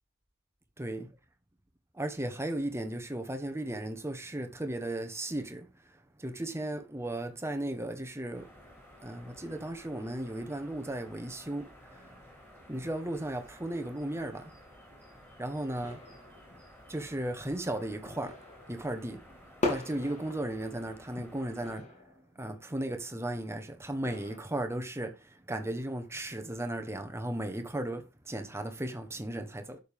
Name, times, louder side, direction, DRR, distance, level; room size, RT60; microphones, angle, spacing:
voice 1, 0.8-1.1 1.9-5.7 6.2-8.5 9.0-12.1 12.7-14.5 15.4-16.0 16.9-18.4 18.7-19.2 19.7-21.9 22.4-29.8, right 1 dB, 15° right, 1.3 m, -36 dB
sound 1, 8.3-21.7, equal, 10° left, 5.1 m, -54 dB
sound 2, 15.8-16.6 17.1-17.2 17.7-19.2 19.6-20.8 21.1-23.4 23.9-24.5, left 2 dB, 35° left, 2.7 m, -39 dB
11.5 x 6.7 x 3.7 m
head